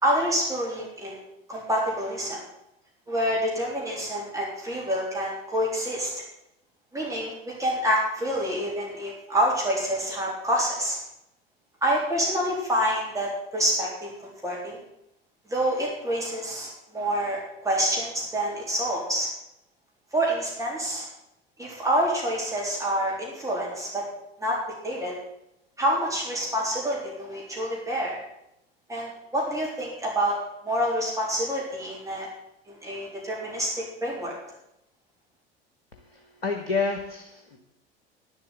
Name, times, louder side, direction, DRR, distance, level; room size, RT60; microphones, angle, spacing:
voice 1, 0.0-1.2 1.5-2.4 3.1-6.1 6.9-11.0 11.8-14.8 15.5-19.3 20.1-21.1 21.6-24.0 24.4-24.6 24.8-25.1 25.8-28.2 28.9-32.3 32.7-34.3, equal, 10° right, -4 dB, 3.7 m, -27 dB
voice 2, 35.9-37.6, left 4 dB, 80° left, 3 dB, 1.2 m, -30 dB
10.5 x 7.9 x 8.0 m, 0.83 s
figure-of-eight pair, 70°, 30 cm